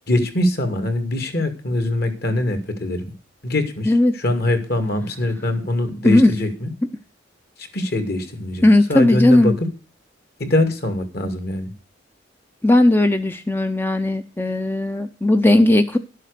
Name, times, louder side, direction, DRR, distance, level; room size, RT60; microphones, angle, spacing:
voice 1, 0.1-3.0 3.4-6.7 7.6-9.5 10.4-11.7, left 1 dB, 50° left, 8 dB, 2.4 m, -23 dB
voice 2, 6.0-6.4 8.6-9.6 12.6-16.0, left 1 dB, 10° left, 8 dB, 0.6 m, -16 dB
12.0 x 7.6 x 6.6 m, 0.36 s
head